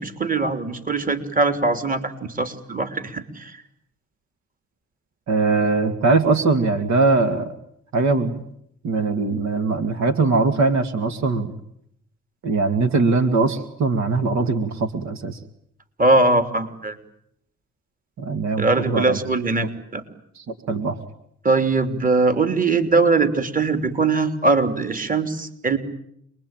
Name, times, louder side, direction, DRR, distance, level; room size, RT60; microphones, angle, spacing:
voice 1, 0.0-3.6 16.0-17.0 18.6-20.0 21.4-25.8, right 3 dB, 30° right, 8 dB, 3.2 m, -21 dB
voice 2, 5.3-7.5 7.9-8.4 8.8-11.5 12.4-15.4 18.2-19.2 20.5-21.0, right 3 dB, 65° right, 8 dB, 2.3 m, -21 dB
28.0 x 22.0 x 9.1 m, 0.72 s
cardioid pair, 90°, 30 cm